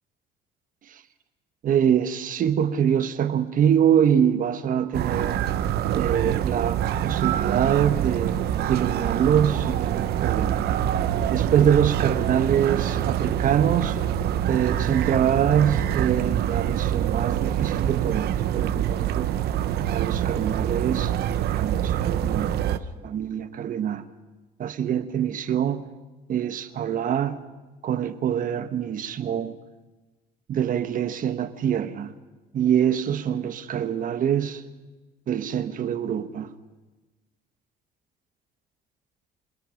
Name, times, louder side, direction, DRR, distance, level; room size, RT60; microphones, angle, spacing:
voice 1, 1.6-5.4 5.9-8.4 8.7-10.6 11.3-14.0 14.5-19.3 19.9-22.6 23.0-24.0 24.6-25.8 26.3-27.4 27.8-29.6 30.5-32.1 32.5-34.6 35.3-36.5, right 9 dB, 55° right, 1.3 m, -24 dB
sound 1, 4.9-22.8, right 10 dB, 70° right, 0.9 m, -25 dB
27.5 x 20.0 x 5.2 m
cardioid pair, 110°, 17 cm